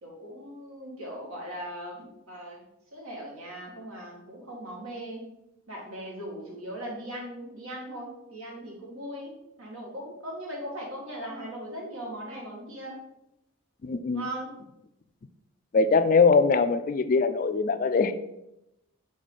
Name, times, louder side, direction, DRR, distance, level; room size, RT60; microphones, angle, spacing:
voice 1, 0.0-2.7 2.9-5.3 5.7-13.0 14.1-14.5, right 1 dB, 80° right, -2 dB, 2.0 m, -39 dB
voice 2, 13.8-14.2 15.7-18.1, left 4 dB, 40° left, 11 dB, 0.3 m, -22 dB
6.2 x 4.5 x 4.0 m, 0.86 s
head